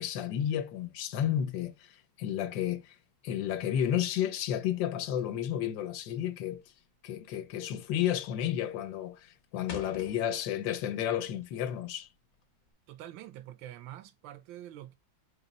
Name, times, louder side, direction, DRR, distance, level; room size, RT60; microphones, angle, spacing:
voice 1, 0.0-3.0 3.2-6.6 7.0-12.1, left 10 dB, 80° left, 1.3 m, -32 dB
sound 1, 6.5-6.8 7.1-7.5 7.8-8.3 8.6-10.9 11.2-12.7, left 5 dB, 55° left, 1.2 m, -47 dB
voice 2, 12.9-15.0, right 12 dB, 80° right, 1.4 m, -46 dB
4.0 x 3.0 x 4.0 m
omnidirectional pair, 2.0 m